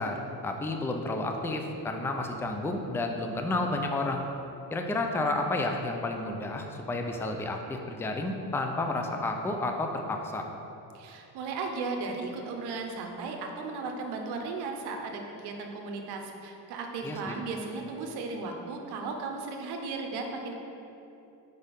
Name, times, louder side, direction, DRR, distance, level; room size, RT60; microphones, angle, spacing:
voice 1, 0.0-4.3 4.7-10.4 17.0-17.4, left 2 dB, 5° left, 3 dB, 0.4 m, -31 dB
voice 2, 10.9-20.5, right 3 dB, 80° right, 3 dB, 0.8 m, -36 dB
4.9 x 4.4 x 5.2 m, 2.9 s
cardioid pair, 105°, 39 cm